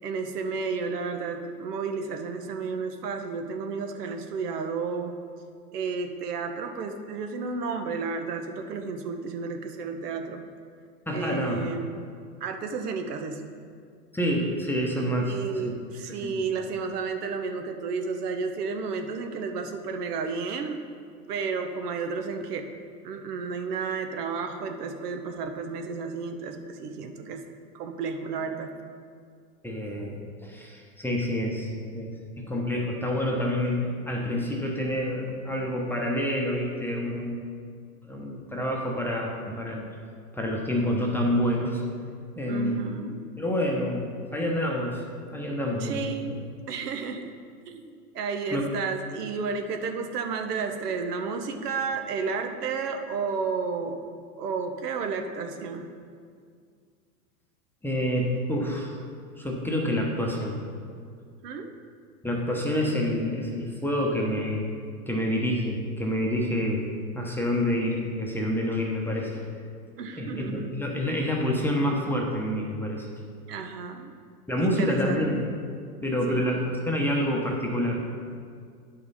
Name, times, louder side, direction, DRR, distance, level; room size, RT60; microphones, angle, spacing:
voice 1, 0.0-5.1 5.7-10.4 11.1-12.0 12.4-13.4 15.2-20.8 21.3-22.7 23.0-27.4 27.7-28.7 42.5-43.2 45.8-46.4 46.7-47.3 47.7-54.0 54.4-55.9 61.4-61.7 70.0-70.7 73.5-74.1 74.6-75.2 76.3-76.6, right 5 dB, 70° right, 5 dB, 1.0 m, -32 dB
voice 2, 11.1-11.6 14.1-15.4 15.6-15.7 16.2-16.4 29.6-37.5 38.0-39.9 40.3-41.8 42.4-42.9 43.4-44.1 44.3-45.0 45.3-46.4 48.5-48.6 57.8-59.0 59.3-60.6 62.2-64.7 65.1-66.8 67.1-69.4 70.2-73.1 74.5-75.4 76.0-78.0, equal, 5° left, -2 dB, 0.9 m, -28 dB
10.0 x 5.6 x 4.1 m, 2.1 s
hypercardioid pair, 115°, 49 cm